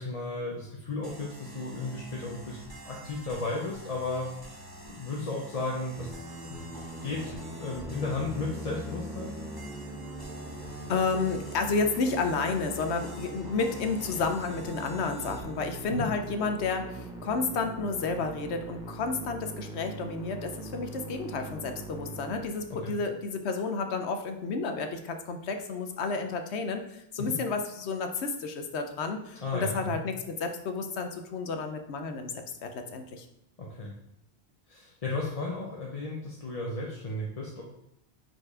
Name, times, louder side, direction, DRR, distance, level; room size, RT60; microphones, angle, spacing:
voice 1, 0.0-2.6 2.8-4.3 4.8-6.6 7.0-9.3 15.9-16.1 22.8-22.9 27.2-27.3 29.4-30.0 33.6-33.9 34.7-37.6, left 2 dB, 35° left, -3 dB, 0.8 m, -34 dB
sound 1, 1.0-15.8, right 1 dB, 20° right, 1.0 m, -46 dB
Musical instrument, 6.0-23.1, right 1 dB, 5° right, 0.6 m, -42 dB
voice 2, 10.9-32.3 32.6-33.3, left 4 dB, 85° left, 6 dB, 1.0 m, -31 dB
5.0 x 4.5 x 4.8 m, 0.82 s
omnidirectional pair, 1.1 m